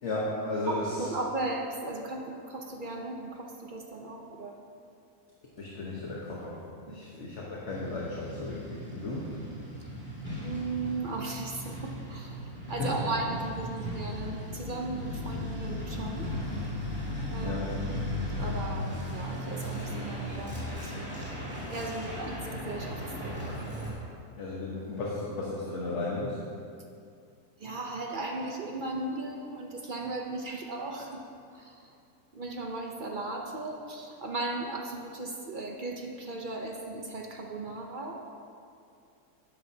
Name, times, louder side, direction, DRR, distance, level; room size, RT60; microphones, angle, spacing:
voice 1, 0.0-1.0 5.6-6.6 6.8-9.3 12.8-13.0 17.4-17.7 24.4-26.4, left 2 dB, 50° left, -4 dB, 1.4 m, -34 dB
voice 2, 0.7-4.6 6.8-7.0 10.4-16.3 17.3-18.0 18.4-21.3 21.7-23.5 27.6-31.2 31.5-31.8 32.3-38.2, right 2 dB, 45° right, 1 dB, 0.7 m, -36 dB
Truck, 7.7-23.9, left 1 dB, 5° right, 2.4 m, -36 dB
12.0 x 9.9 x 2.8 m, 2.4 s
omnidirectional pair, 1.7 m